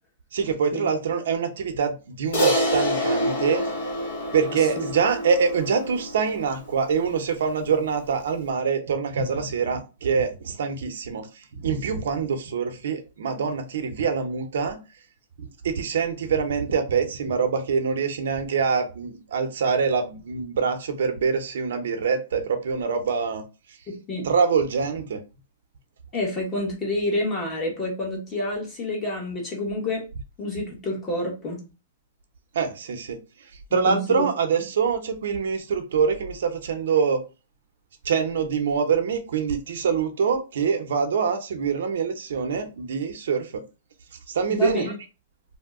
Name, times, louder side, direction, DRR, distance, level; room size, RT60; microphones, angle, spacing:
voice 1, 0.3-3.7 4.3-11.3 11.6-14.8 15.4-23.4 24.2-25.2 32.5-33.2 33.7-37.2 38.0-43.6 44.3-44.9, right 6 dB, 75° right, 6 dB, 0.7 m, -25 dB
Crash cymbal, 2.3-6.9, equal, 55° left, 1.1 m, -26 dB
voice 2, 4.5-4.9 23.9-24.2 26.1-30.1 30.4-31.6 33.7-34.3 44.5-44.9, left 2 dB, 20° left, -1 dB, 1.2 m, -29 dB
2.7 x 2.2 x 3.6 m, 0.30 s
hypercardioid pair, 155°, 0 cm